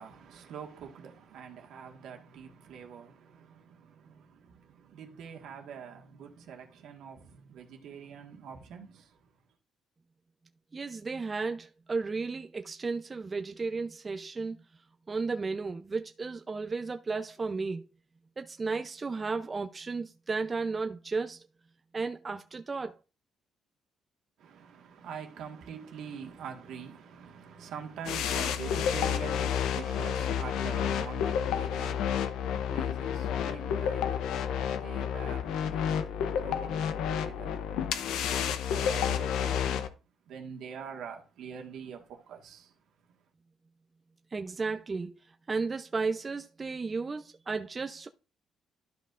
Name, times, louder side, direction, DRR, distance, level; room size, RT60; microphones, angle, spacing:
voice 1, 0.0-9.3 24.4-39.9 40.3-42.7, right 7 dB, 80° right, 1.5 m, -45 dB
voice 2, 10.7-14.6 15.1-17.9 18.4-21.5 21.9-23.0 44.3-45.1 45.5-48.1, right 4 dB, 25° right, 0.5 m, -34 dB
sound 1, 28.0-39.9, left 8 dB, 85° left, 0.6 m, -30 dB
12.0 x 5.4 x 2.5 m
cardioid pair, 110°, 0 cm